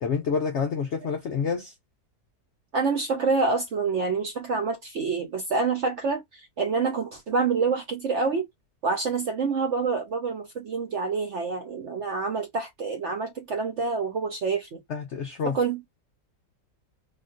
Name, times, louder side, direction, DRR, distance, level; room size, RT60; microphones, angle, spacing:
voice 1, 0.0-1.7 14.9-15.6, left 6 dB, 75° left, 0.6 m, -28 dB
voice 2, 2.7-8.4 8.8-14.8 15.4-15.8, right 4 dB, 60° right, 0.7 m, -27 dB
3.5 x 2.4 x 2.4 m
omnidirectional pair, 1.8 m